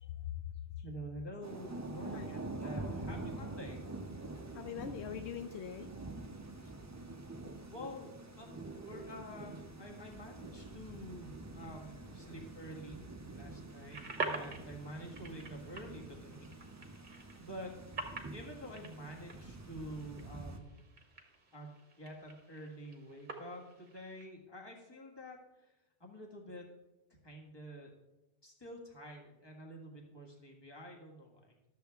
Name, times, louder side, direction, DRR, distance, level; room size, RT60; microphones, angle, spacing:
voice 1, 0.0-0.8 2.1-2.3 4.5-5.9 6.6-6.7 12.3-12.5, left 9 dB, 80° left, 8 dB, 0.9 m, -43 dB
voice 2, 0.8-3.8 7.6-13.0 13.3-16.5 17.3-17.7 18.3-20.8 21.5-26.7 27.2-27.9 28.4-31.6, equal, 25° left, -1 dB, 1.6 m, -48 dB
Thunder / Rain, 1.4-20.6, right 2 dB, 20° right, 0.5 m, -46 dB
sound 1, 13.7-24.3, right 3 dB, 45° right, 1.2 m, -46 dB
12.0 x 7.0 x 3.5 m, 1.0 s
omnidirectional pair, 1.1 m